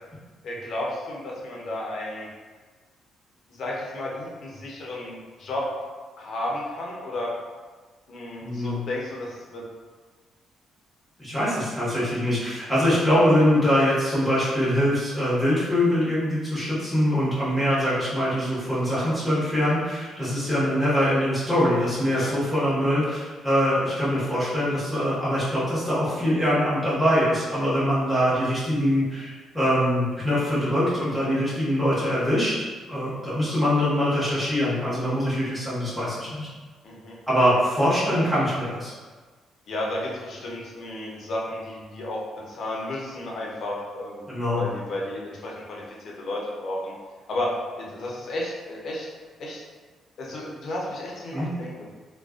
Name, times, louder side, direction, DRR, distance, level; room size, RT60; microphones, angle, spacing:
voice 1, 0.4-2.3 3.5-5.7 6.2-7.3 8.1-9.6 12.7-12.9 22.2-22.3 36.8-37.2 39.7-42.2 42.5-46.9 47.3-49.1 49.4-49.6 50.2-52.0, left 1 dB, 60° left, -3 dB, 0.6 m, -33 dB
voice 2, 8.4-8.8 11.2-32.5 32.9-36.5 37.3-38.9 44.3-44.6 51.3-51.5, equal, ahead, -11 dB, 1.0 m, -23 dB
2.4 x 2.2 x 2.3 m, 1.4 s
cardioid pair, 90°, 0 cm